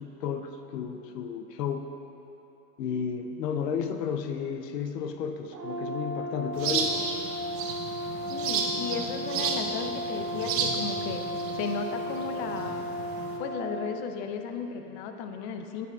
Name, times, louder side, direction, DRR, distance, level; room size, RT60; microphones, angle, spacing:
voice 1, 0.0-1.9 2.8-7.1, left 7 dB, 80° left, 7 dB, 0.8 m, -32 dB
Brass instrument, 5.5-13.9, equal, 85° right, 1.1 m, -35 dB
sound 1, 6.6-13.4, right 5 dB, 30° right, 0.8 m, -33 dB
voice 2, 8.3-12.8 13.4-15.9, left 6 dB, 40° left, 6 dB, 0.6 m, -35 dB
10.5 x 8.5 x 2.4 m, 2.9 s
hypercardioid pair, 120°, 48 cm